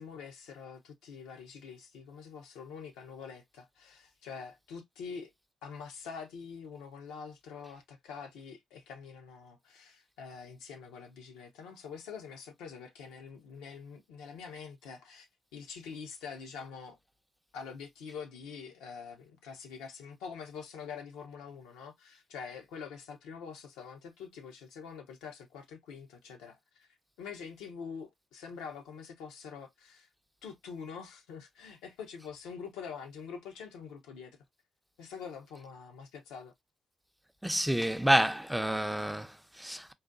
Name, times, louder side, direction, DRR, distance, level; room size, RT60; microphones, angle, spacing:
voice 1, 0.0-5.3 5.6-17.0 17.5-26.9 27.2-30.1 30.4-34.4 35.0-36.5, left 6 dB, 85° left, 0.6 m, -45 dB
voice 2, 37.4-39.9, right 1 dB, 5° right, 0.5 m, -29 dB
3.9 x 2.2 x 2.4 m
hypercardioid pair, 45°, 0 cm